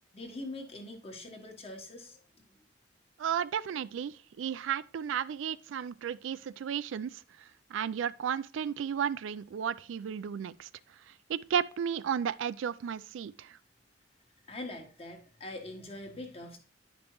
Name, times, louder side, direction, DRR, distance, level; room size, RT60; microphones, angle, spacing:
voice 1, 0.1-2.2 14.5-16.6, left 1 dB, 30° left, 1.2 m, -43 dB
voice 2, 3.2-7.2 7.7-10.7 11.3-13.6, right 8 dB, 85° right, 0.3 m, -33 dB
10.0 x 5.2 x 3.0 m
head